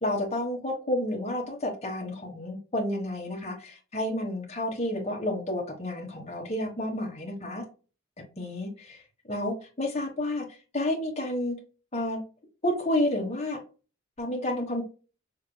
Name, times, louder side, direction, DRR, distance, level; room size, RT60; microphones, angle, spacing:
voice 1, 0.0-7.6 8.4-9.0 9.3-10.5 10.7-11.6 11.9-12.2 12.6-13.6 14.2-14.8, left 1 dB, 35° left, 1.2 m, -30 dB
5.6 x 3.6 x 2.2 m
head